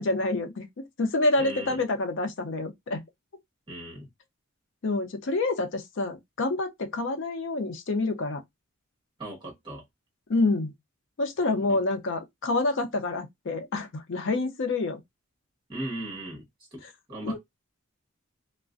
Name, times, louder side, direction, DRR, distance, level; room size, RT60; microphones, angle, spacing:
voice 1, 0.0-3.0 4.8-8.4 10.3-10.7 11.2-15.0 17.2-17.4, left 2 dB, 55° left, 0.5 m, -27 dB
voice 2, 1.4-1.8 3.7-4.1 9.2-9.8 11.7-11.8 15.7-16.4 16.7-16.8 17.1-17.4, right 1 dB, 20° right, 1.1 m, -37 dB
2.4 x 2.1 x 2.4 m
head